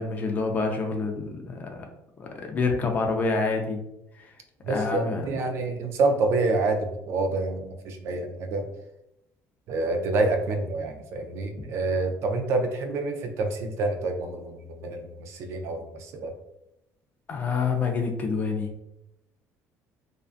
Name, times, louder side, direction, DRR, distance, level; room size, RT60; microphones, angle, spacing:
voice 1, 0.0-1.9 2.2-3.8 4.1-4.3 4.7-5.4 11.6-11.7 17.3-18.7, left 4 dB, 30° left, 3 dB, 0.3 m, -27 dB
voice 2, 4.7-8.6 9.7-16.3, right 3 dB, 50° right, 5 dB, 0.3 m, -27 dB
2.5 x 2.2 x 2.4 m, 0.84 s
cardioid pair, 165°, 6 cm